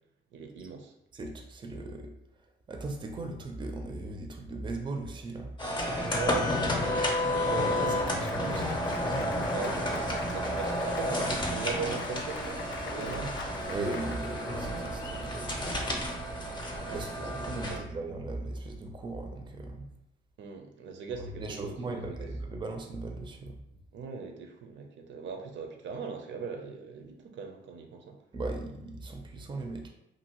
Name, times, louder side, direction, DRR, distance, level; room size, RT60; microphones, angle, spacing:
voice 1, 0.3-0.9 6.1-8.7 9.5-13.4 16.8-17.9 20.4-22.3 23.9-28.2, right 5 dB, 65° right, 4 dB, 0.6 m, -40 dB
voice 2, 1.1-2.1 2.7-5.5 7.8-8.8 13.7-16.1 16.9-19.9 21.4-23.6 28.3-29.9, right 2 dB, 25° right, 3 dB, 0.5 m, -38 dB
sound 1, 5.6-17.8, left 1 dB, 25° left, 0.6 m, -31 dB
Applause, 6.6-15.3, left 5 dB, 65° left, 0.4 m, -45 dB
2.7 x 2.6 x 2.9 m, 0.83 s
cardioid pair, 90°, 20 cm